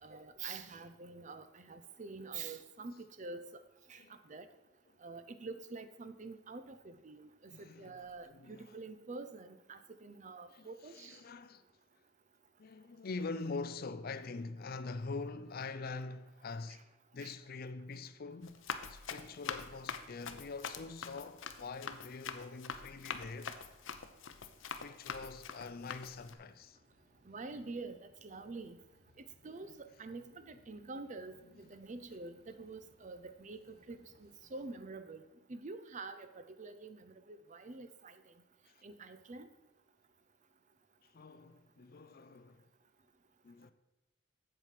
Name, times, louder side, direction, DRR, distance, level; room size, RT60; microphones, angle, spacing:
voice 1, 0.0-3.6 3.9-4.5 5.0-11.2 16.7-16.8 17.2-17.3 27.3-28.8 29.2-35.2 35.5-38.2 38.8-39.5, right 3 dB, 40° right, 0.6 m, -47 dB
voice 2, 7.5-7.9 8.2-8.8 10.5-10.7 10.9-11.6 12.6-18.6 18.9-23.6 24.8-26.8 29.5-29.7 38.7-38.8 41.1-42.6 43.4-43.7, left 3 dB, 50° left, 0.5 m, -44 dB
Run, 18.4-26.3, left 6 dB, 90° left, 0.7 m, -44 dB
sound 1, 26.3-34.8, equal, 55° right, 2.8 m, -69 dB
7.7 x 7.4 x 5.8 m
head